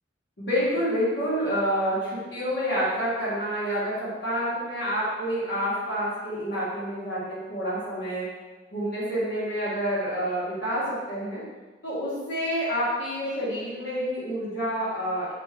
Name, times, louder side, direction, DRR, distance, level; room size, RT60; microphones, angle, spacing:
voice 1, 0.4-8.3 8.7-11.4 11.8-15.3, equal, 65° left, -9 dB, 1.3 m, -28 dB
4.3 x 2.5 x 3.3 m, 1.3 s
head